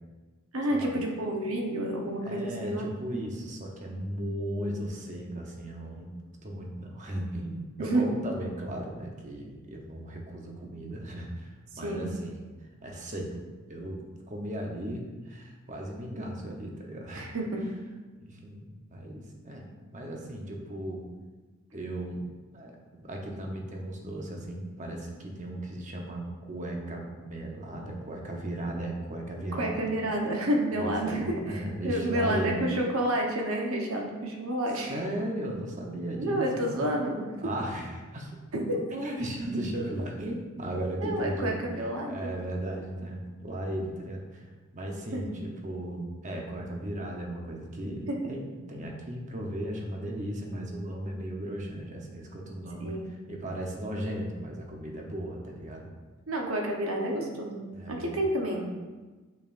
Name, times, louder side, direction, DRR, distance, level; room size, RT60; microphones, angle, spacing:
voice 1, 0.5-2.9 7.8-8.1 11.8-12.1 17.1-17.6 29.5-34.9 36.2-37.3 38.5-38.8 41.0-42.3 45.1-45.2 48.1-48.2 52.8-53.1 56.3-58.7, right 1 dB, 80° right, 0 dB, 1.1 m, -29 dB
voice 2, 2.2-6.1 6.4-12.4 12.8-13.3 13.7-14.0 14.3-17.3 18.2-21.0 21.7-22.3 22.5-29.8 30.7-32.6 34.9-36.9 37.4-38.4 38.9-55.9 57.7-58.3, right 1 dB, 35° right, 0 dB, 0.9 m, -36 dB
6.8 x 5.9 x 2.6 m, 1.3 s
head